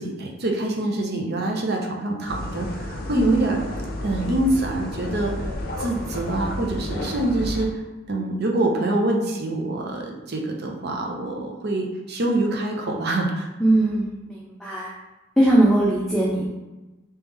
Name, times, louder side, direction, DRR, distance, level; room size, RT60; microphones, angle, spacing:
voice 1, 0.0-3.6 4.0-5.5 5.8-7.7 8.1-13.5, right 2 dB, 55° right, 0 dB, 0.7 m, -25 dB
sound 1, 2.3-7.6, left 1 dB, 50° left, 0.6 m, -31 dB
voice 2, 13.6-14.9 15.4-16.4, right 1 dB, ahead, -5 dB, 0.5 m, -20 dB
3.1 x 3.0 x 3.5 m, 1.1 s
head